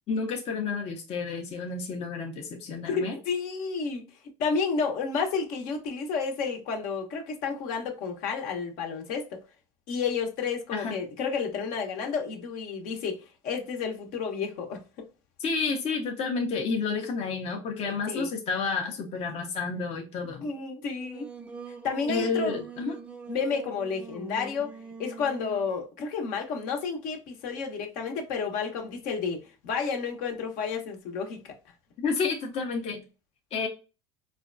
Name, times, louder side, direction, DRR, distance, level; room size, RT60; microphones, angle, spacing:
voice 1, 0.1-3.2 10.7-10.9 15.4-20.5 22.1-23.0 32.0-33.0 33.5-33.7, left 4 dB, 45° left, 0.7 m, -30 dB
voice 2, 2.8-4.0 4.4-9.4 9.9-15.1 18.1-18.3 20.4-21.3 21.8-22.6 23.3-31.4, left 5 dB, 65° left, 1.0 m, -31 dB
Singing, 20.9-25.7, right 4 dB, 10° right, 0.5 m, -43 dB
4.2 x 2.2 x 2.5 m
hypercardioid pair, 90°, 15 cm